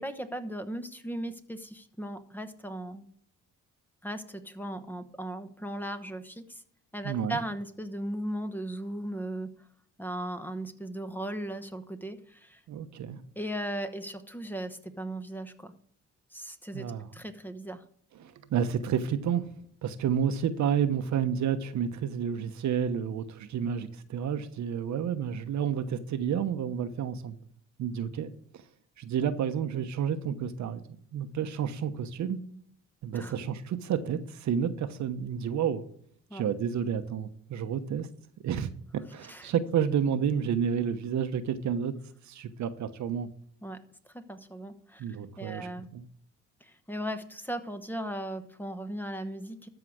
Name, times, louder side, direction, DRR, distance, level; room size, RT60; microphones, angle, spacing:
voice 1, 0.0-3.0 4.0-6.6 6.9-9.5 10.0-12.6 13.4-15.7 16.3-16.8 17.1-17.8 33.1-33.3 36.3-36.4 39.3-39.5 43.6-45.0 45.4-45.9 46.6-49.7, right 1 dB, 5° left, 9 dB, 1.0 m, -37 dB
voice 2, 7.0-7.4 12.7-13.2 16.7-17.1 18.2-19.5 19.8-27.4 27.8-28.3 29.0-30.8 31.1-32.5 33.0-35.8 36.3-38.1 38.4-42.0 42.2-43.3 45.0-45.7 45.9-46.1, right 8 dB, 65° right, 10 dB, 1.0 m, -30 dB
13.0 x 4.9 x 6.2 m, 0.64 s
cardioid pair, 90°, 30 cm